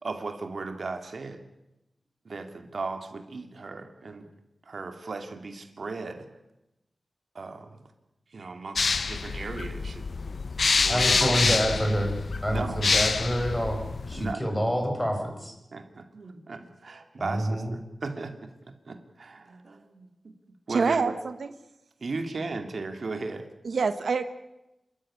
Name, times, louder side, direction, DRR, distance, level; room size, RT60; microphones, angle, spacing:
voice 1, 0.0-1.4 2.2-4.3 4.7-6.3 7.3-7.8 8.3-10.0 10.8-11.5 12.5-12.8 14.1-14.4 15.7-20.1 20.7-21.1 22.0-23.5, right 3 dB, 65° right, 6 dB, 2.3 m, -36 dB
sound 1, 8.8-14.3, left 4 dB, 65° left, 0.7 m, -27 dB
voice 2, 10.9-12.1 12.4-13.8 14.1-15.6 17.2-17.7, equal, 10° left, 3 dB, 5.4 m, -27 dB
voice 3, 20.7-21.5 23.6-24.2, right 5 dB, 90° right, 10 dB, 1.2 m, -26 dB
27.0 x 13.5 x 9.7 m, 0.92 s
wide cardioid pair, 90°, 0 cm